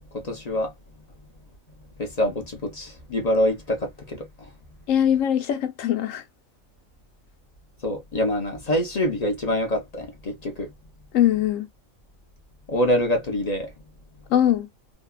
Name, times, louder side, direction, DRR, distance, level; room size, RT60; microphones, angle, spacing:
voice 1, 0.1-0.7 2.0-4.5 7.8-10.7 12.7-13.7, equal, 40° left, 0.6 m, -25 dB
voice 2, 4.9-6.2 11.1-11.7 14.3-14.7, left 10 dB, 75° left, 1.0 m, -21 dB
2.8 x 2.2 x 2.2 m
omnidirectional pair, 1.4 m